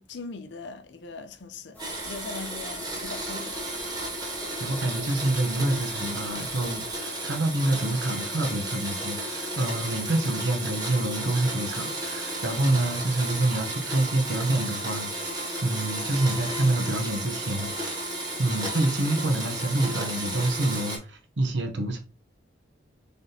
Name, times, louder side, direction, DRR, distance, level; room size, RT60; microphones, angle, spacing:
voice 1, 0.0-3.8, left 4 dB, 70° left, 0.5 m, -40 dB
sound 1, 1.7-7.0, equal, 10° left, 1.1 m, -47 dB
Domestic sounds home sounds, 1.8-21.0, right 1 dB, 25° right, 1.5 m, -33 dB
voice 2, 4.6-22.0, right 2 dB, 70° right, 0.8 m, -27 dB
4.0 x 3.4 x 2.7 m
head